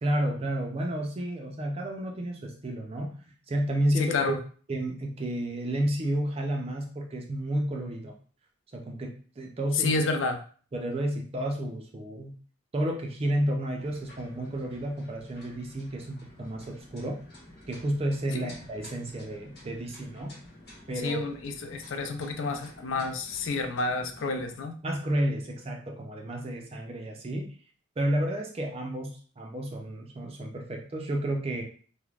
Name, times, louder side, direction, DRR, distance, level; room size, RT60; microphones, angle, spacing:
voice 1, 0.0-3.1 3.5-4.4 4.7-8.2 8.7-9.9 10.7-12.3 12.7-17.2 17.7-20.3 20.9-21.2 24.8-27.5 28.0-31.6, right 1 dB, 30° right, 2 dB, 0.4 m, -31 dB
voice 2, 4.0-4.4 9.7-10.4 18.3-18.5 21.0-24.8, left 3 dB, 80° left, 6 dB, 0.4 m, -29 dB
sound 1, 13.8-24.6, left 1 dB, 55° left, 1.0 m, -51 dB
3.2 x 2.0 x 2.3 m, 0.42 s
head